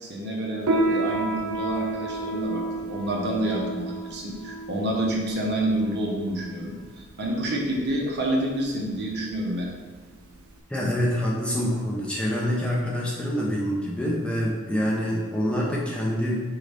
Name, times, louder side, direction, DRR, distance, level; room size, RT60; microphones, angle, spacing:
voice 1, 0.0-9.7, right 1 dB, 55° right, -1 dB, 0.8 m, -28 dB
Piano, 0.6-10.6, right 2 dB, 80° right, 0.5 m, -31 dB
voice 2, 10.7-16.4, equal, 5° left, -4 dB, 0.6 m, -26 dB
3.9 x 3.8 x 3.4 m, 1.4 s
head